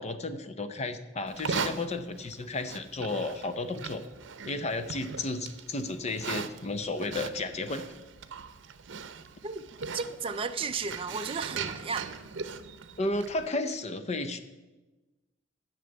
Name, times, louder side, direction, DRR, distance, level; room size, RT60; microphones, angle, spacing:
voice 1, 0.0-4.0 4.5-7.9 13.0-14.4, left 2 dB, 35° left, 0.6 m, -33 dB
Livestock farm animals working animals, 1.3-13.5, right 5 dB, 70° right, 0.7 m, -40 dB
voice 2, 9.9-12.1, right 5 dB, 30° right, 0.4 m, -34 dB
11.0 x 6.7 x 7.8 m
head